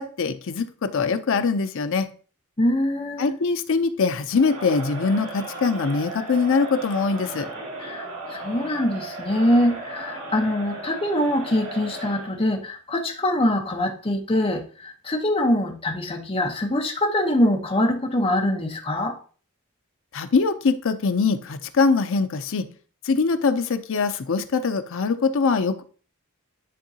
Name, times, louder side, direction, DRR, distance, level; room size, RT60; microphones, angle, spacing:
voice 1, 0.0-2.1 3.2-7.5 20.1-22.7 23.0-25.8, left 4 dB, 60° left, 0.5 m, -23 dB
voice 2, 2.6-3.4 7.8-19.2, left 1 dB, 25° left, 0.9 m, -23 dB
Crowd, 4.3-12.4, right 2 dB, 80° right, 2.2 m, -36 dB
10.0 x 3.7 x 2.8 m
head